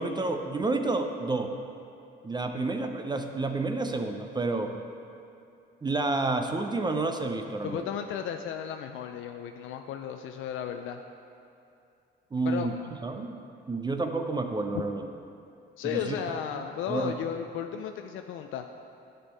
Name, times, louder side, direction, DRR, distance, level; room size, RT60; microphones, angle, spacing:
voice 1, 0.0-1.5 2.2-4.7 5.8-7.9 12.3-12.8 13.0-13.4 13.7-15.1 15.8-16.1 16.9-17.1, right 3 dB, 20° right, 5 dB, 0.5 m, -29 dB
voice 2, 7.6-11.0 12.4-12.7 15.8-18.6, left 9 dB, 85° left, 6 dB, 0.4 m, -34 dB
10.0 x 5.5 x 4.2 m, 2.6 s
cardioid pair, 90°, 20 cm